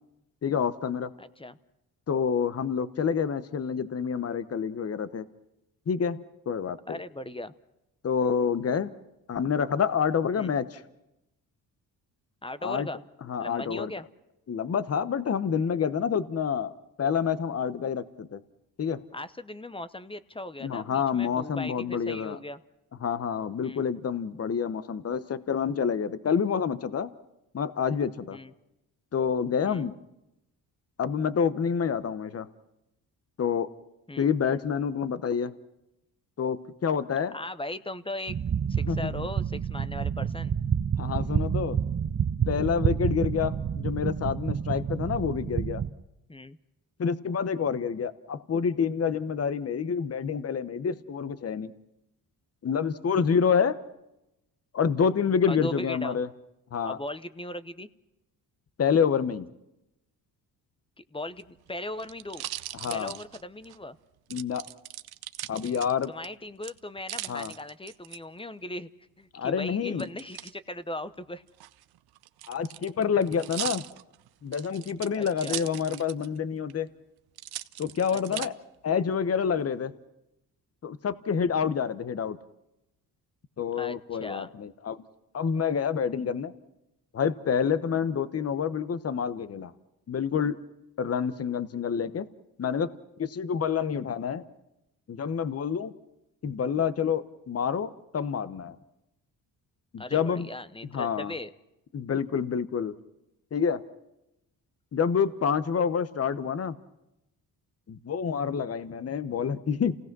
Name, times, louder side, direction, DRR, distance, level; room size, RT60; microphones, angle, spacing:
voice 1, 0.4-1.1 2.1-5.3 5.9-6.2 6.5-7.0 8.0-8.9 9.3-10.8 12.6-12.9 13.3-13.9 14.5-16.7 17.0-18.4 18.8-19.0 20.6-22.4 23.0-27.1 27.5-28.4 29.1-29.9 31.0-32.5 33.4-33.7 34.2-35.5 36.4-37.3 38.8-39.1 41.0-41.8 42.5-45.8 47.0-51.7 52.6-53.8 54.7-56.3 56.7-57.0 58.8-59.5 62.8-63.2 64.3-64.6 65.5-66.1 67.3-67.5 69.3-70.0 72.5-73.8 74.4-76.9 77.8-78.5 78.8-79.9 80.8-82.4 83.6-85.0 85.3-86.5 87.1-89.7 90.1-90.6 91.0-92.3 92.6-92.9 93.2-94.4 95.1-95.9 96.4-98.8 99.9-100.5 100.9-101.3 101.9-102.9 103.5-103.8 104.9-106.8 107.9-110.0, left 7 dB, 40° left, 14 dB, 1.0 m, -28 dB
voice 2, 1.2-1.6 6.9-7.5 10.3-10.5 12.4-13.0 13.4-14.1 19.1-22.6 23.6-23.8 28.3-28.5 29.6-29.9 34.1-34.3 37.3-38.4 38.7-40.5 41.1-41.3 46.3-46.6 55.5-56.2 56.8-57.9 61.0-62.4 62.9-64.0 66.1-68.9 69.2-71.4 75.1-75.6 78.1-78.5 83.8-84.5 100.0-101.5, left 1 dB, 15° left, 14 dB, 0.8 m, -38 dB
sound 1, 38.3-45.9, right 7 dB, 35° right, 0.8 m, -29 dB
sound 2, 61.3-63.8 64.3-66.3 66.6-68.2 70.0-70.5 71.5-76.4 76.7-76.8 77.4-78.5 79.1-79.6, right 14 dB, 75° right, 0.7 m, -39 dB
28.0 x 17.5 x 6.1 m, 0.90 s
cardioid pair, 80°, 38 cm